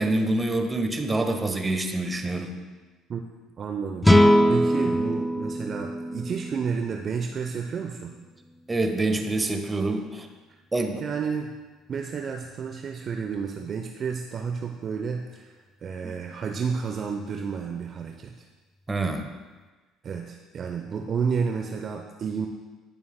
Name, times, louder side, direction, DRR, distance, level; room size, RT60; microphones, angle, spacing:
voice 1, 0.0-2.5 4.8-5.0 8.7-10.3 10.7-11.0 16.0-16.1 18.9-19.3, right 2 dB, 20° right, 5 dB, 1.3 m, -26 dB
voice 2, 3.6-4.1 4.5-8.2 10.5-10.6 11.0-11.5 11.9-18.4 20.0-22.5, right 6 dB, 45° right, 3 dB, 0.7 m, -31 dB
sound 1, 4.0-7.3, equal, 10° left, 0.7 m, -21 dB
19.0 x 7.1 x 2.2 m, 1.3 s
hypercardioid pair, 55°, 0 cm